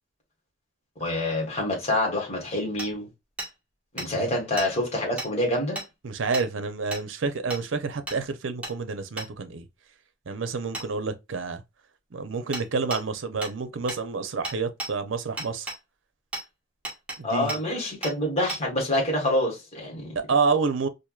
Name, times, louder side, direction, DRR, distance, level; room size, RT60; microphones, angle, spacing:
voice 1, 1.0-3.1 3.9-5.8 17.2-20.1, left 1 dB, 35° left, 1.6 m, -27 dB
Hammer, 2.8-2.9 3.4-3.5 4.0-4.1 4.6-4.7 5.2-5.3 5.8-5.9 6.3-6.5 6.9-7.0 7.5-7.6 8.1-8.2 8.6-8.8 9.2-9.3 10.7-10.9 12.5-12.7 12.9-13.0 13.4-13.5 13.9-14.0 14.4-14.9 15.4-15.8 16.3-16.5 16.8-17.2 17.5-17.6 18.0-18.2 18.5-18.6, right 2 dB, 5° right, 1.4 m, -34 dB
voice 2, 6.0-9.7 10.3-11.6 12.1-15.7 17.2-17.6 20.3-20.9, right 4 dB, 80° right, 0.6 m, -28 dB
4.5 x 2.6 x 2.3 m
head